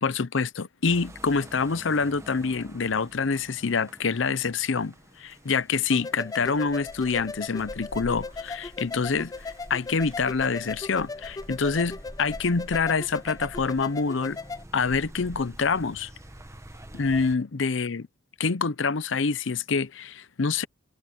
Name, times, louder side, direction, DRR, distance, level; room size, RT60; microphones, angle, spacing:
voice 1, 0.0-14.4 14.7-16.1 16.9-18.1 18.4-20.7, left 4 dB, 75° left, 0.7 m, -26 dB
sound 1, 0.9-17.4, right 1 dB, 15° right, 1.3 m, -46 dB
sound 2, 5.9-14.6, left 3 dB, 20° left, 0.3 m, -38 dB
head